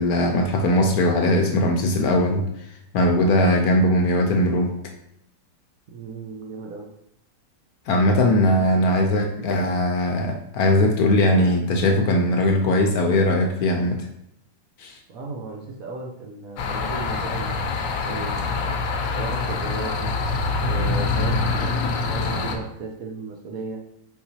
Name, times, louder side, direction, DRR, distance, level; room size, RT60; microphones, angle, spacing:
voice 1, 0.0-2.4 2.9-4.7 7.9-14.1 14.8-14.9, left 1 dB, 70° left, 3 dB, 1.0 m, -20 dB
voice 2, 5.9-6.9 15.1-20.1 20.6-23.8, right 4 dB, 65° right, 0 dB, 1.0 m, -35 dB
sound 1, 16.6-22.6, left 3 dB, 85° left, 1.3 m, -25 dB
4.6 x 3.7 x 2.7 m, 0.74 s
omnidirectional pair, 1.8 m